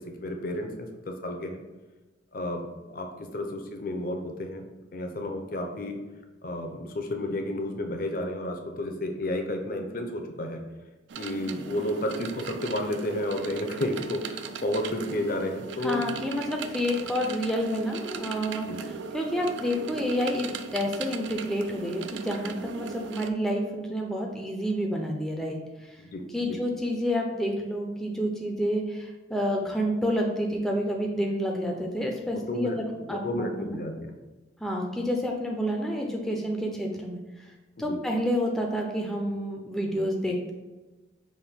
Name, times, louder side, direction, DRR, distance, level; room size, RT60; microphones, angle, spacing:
voice 1, 0.0-1.6 2.3-2.7 2.9-4.6 4.9-6.0 6.4-10.6 11.2-16.2 18.7-18.8 26.0-26.6 32.3-34.1 37.8-38.0, left 1 dB, 50° left, 4 dB, 0.5 m, -32 dB
sound 1, 11.1-23.3, right 5 dB, 70° right, 0.3 m, -38 dB
voice 2, 15.8-18.7 19.1-20.5 20.7-25.6 25.9-26.0 26.3-33.8 34.6-37.2 37.8-40.5, equal, ahead, 0 dB, 0.4 m, -29 dB
5.5 x 2.6 x 3.4 m, 1.2 s
head